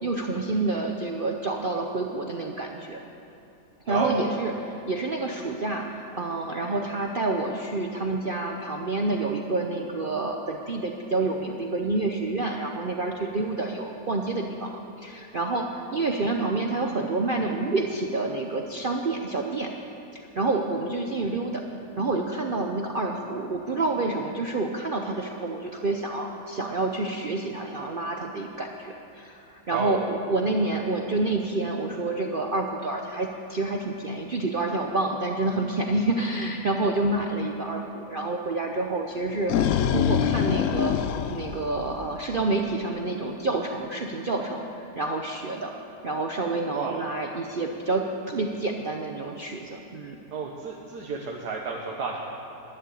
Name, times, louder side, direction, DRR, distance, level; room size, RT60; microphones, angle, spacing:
voice 1, 0.0-3.0 3.9-14.7 15.0-19.7 20.1-21.6 22.0-39.5 39.9-41.0 41.3-45.7 46.0-50.2, right 2 dB, 50° right, 2 dB, 0.6 m, -28 dB
voice 2, 3.9-4.3 29.7-30.1 46.7-47.0 50.3-52.2, right 5 dB, 70° right, -1 dB, 1.6 m, -31 dB
sound 1, 39.2-42.4, left 8 dB, 70° left, 0.7 m, -25 dB
11.5 x 10.0 x 8.5 m, 3.0 s
omnidirectional pair, 1.8 m